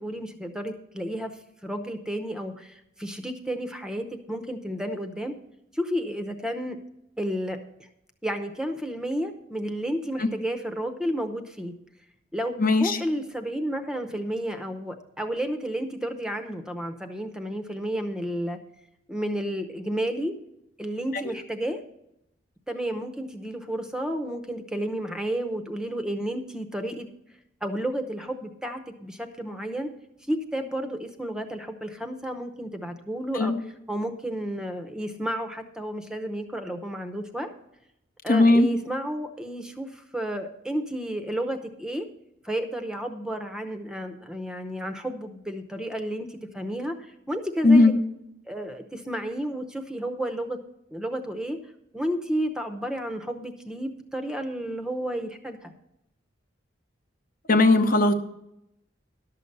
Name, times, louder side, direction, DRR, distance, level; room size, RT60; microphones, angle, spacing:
voice 1, 0.0-5.4 5.7-6.8 7.2-7.6 8.2-11.7 12.3-18.6 19.1-20.4 20.8-21.8 22.7-27.1 27.6-29.9 30.3-33.5 33.9-37.5 38.2-42.1 42.4-47.9 48.5-50.6 50.9-51.6 51.9-55.7, equal, 5° right, 7 dB, 0.7 m, -31 dB
voice 2, 12.6-13.0 33.4-33.6 38.3-38.7 47.6-47.9 57.5-58.1, left 2 dB, 45° left, 7 dB, 0.9 m, -18 dB
12.0 x 6.7 x 6.6 m, 0.81 s
head